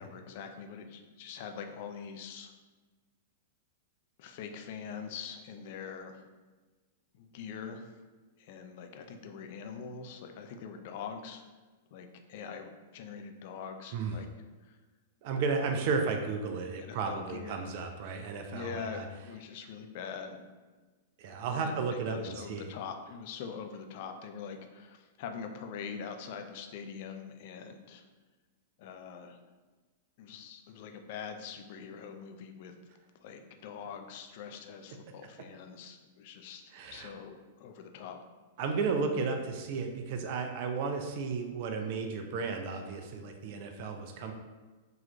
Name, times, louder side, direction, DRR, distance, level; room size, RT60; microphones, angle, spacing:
voice 1, 0.0-2.5 4.2-6.2 7.1-8.0 8.4-11.4 11.9-14.3 14.6-14.8 15.5-15.7 16.9-17.7 18.5-20.4 21.6-28.0 28.8-29.4 30.2-32.7 33.2-36.6 36.9-38.2, left 6 dB, 50° left, 6 dB, 0.4 m, -43 dB
voice 2, 15.2-19.0 21.2-22.6 36.7-37.1 38.6-44.3, right 4 dB, 50° right, 5 dB, 0.4 m, -33 dB
3.8 x 3.0 x 2.8 m, 1.3 s
figure-of-eight pair, 100°, 0 cm